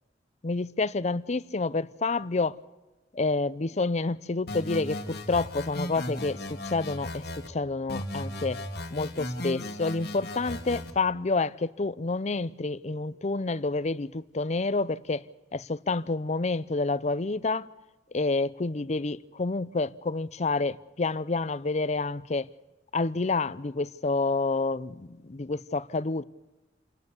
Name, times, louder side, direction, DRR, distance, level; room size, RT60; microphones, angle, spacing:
voice 1, 0.4-2.6 3.1-8.6 8.9-15.2 15.5-17.7 18.1-22.5 22.9-26.2, left 3 dB, 40° left, 0.6 m, -29 dB
sound 1, 4.5-7.5 7.9-10.9, left 1 dB, 65° left, 1.9 m, -36 dB
29.0 x 12.5 x 8.2 m
head